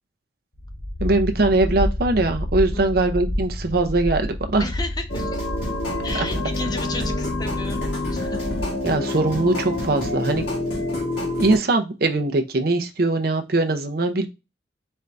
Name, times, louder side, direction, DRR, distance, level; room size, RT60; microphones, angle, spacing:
sound 1, 0.5-9.0, left 1 dB, 45° left, 1.3 m, -29 dB
voice 1, 1.0-4.7 8.8-10.4 11.4-14.3, right 2 dB, 55° right, 6 dB, 0.6 m, -21 dB
voice 2, 4.6-5.4 6.0-7.8 8.1-8.4, left 2 dB, 20° left, 6 dB, 0.5 m, -33 dB
sound 2, 5.1-11.6, left 2 dB, 60° left, 1.3 m, -27 dB
4.4 x 2.6 x 3.3 m, 0.26 s
head